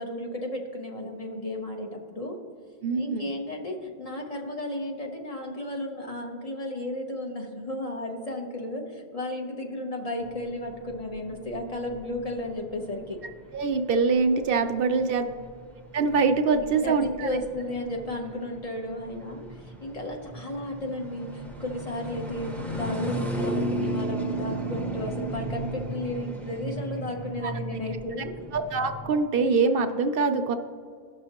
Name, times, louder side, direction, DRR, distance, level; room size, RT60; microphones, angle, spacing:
voice 1, 0.0-2.4 2.9-13.2 14.8-15.3 16.5-28.3, left 1 dB, 40° left, 1 dB, 1.0 m, -34 dB
voice 2, 2.8-3.3 13.5-15.2 15.9-17.3 27.4-27.5 28.5-30.5, right 4 dB, 70° right, 7 dB, 0.7 m, -24 dB
sound 1, 10.2-29.2, right 1 dB, ahead, 0.6 m, -35 dB
16.0 x 6.1 x 2.9 m, 2.2 s
omnidirectional pair, 1.0 m